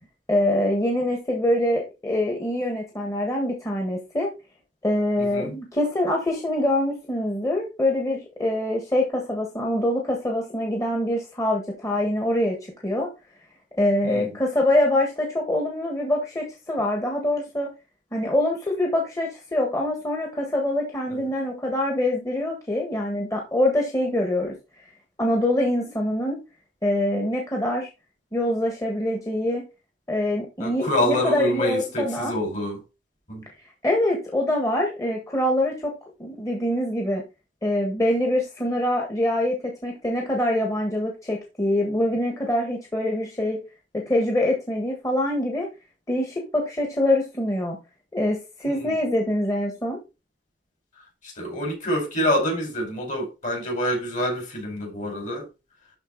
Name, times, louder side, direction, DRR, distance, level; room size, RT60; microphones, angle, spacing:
voice 1, 0.3-4.3 4.8-13.1 13.8-17.7 18.1-24.5 25.2-26.4 26.8-27.9 28.3-29.6 30.1-32.3 33.8-35.9 36.2-37.2 37.6-39.5 39.8-43.6 43.9-45.7 46.1-47.8 48.1-50.0, left 1 dB, 20° left, 1.6 m, -24 dB
voice 2, 5.2-5.5 14.0-14.3 21.1-21.2 30.6-32.8 33.3-33.4 48.7-48.9 51.2-55.5, equal, 45° left, 5.0 m, -27 dB
12.0 x 4.1 x 4.0 m
head